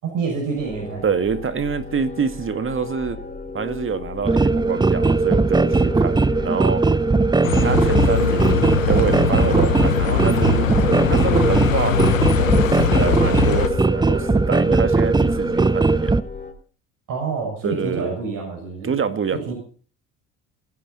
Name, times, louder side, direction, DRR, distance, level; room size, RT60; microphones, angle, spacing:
voice 1, 0.0-1.0 17.1-18.9 19.3-19.5, right 4 dB, 55° right, 6.2 m, -27 dB
sound 1, 0.5-16.5, left 5 dB, 20° left, 3.2 m, -35 dB
voice 2, 1.0-3.2 3.5-6.8 7.6-10.7 11.1-12.0 12.3-16.3 17.6-18.1 18.8-19.5, right 6 dB, 30° right, 2.0 m, -26 dB
sound 2, 4.2-16.2, right 3 dB, 10° right, 0.7 m, -19 dB
Bus, 7.4-13.7, left 9 dB, 90° left, 1.3 m, -22 dB
27.5 x 10.5 x 4.1 m
hypercardioid pair, 60°, 38 cm